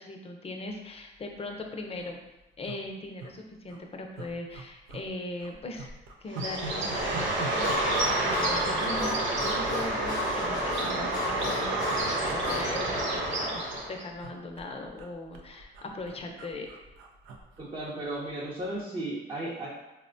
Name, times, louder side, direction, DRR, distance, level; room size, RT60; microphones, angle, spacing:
voice 1, 0.0-2.2 2.6-5.9 6.2-16.7, left 2 dB, 30° left, 3 dB, 0.5 m, -40 dB
sound 1, 1.2-1.3 1.6-1.7 1.9-2.1 2.6-3.3 3.6-3.8 4.1-5.1 5.4-9.6 9.9-10.2 10.8-11.5 11.8-12.0 12.3-13.4 13.7-18.3 18.6-18.8, right 4 dB, 90° right, 0.4 m, -44 dB
Bird, 6.3-14.0, right 2 dB, 70° right, 0.9 m, -29 dB
Harmonica, 7.6-12.7, left 3 dB, 65° left, 0.7 m, -34 dB
voice 2, 17.6-19.7, right 1 dB, 25° right, -6 dB, 0.6 m, -35 dB
4.1 x 2.1 x 2.6 m, 0.98 s
cardioid pair, 90°, 20 cm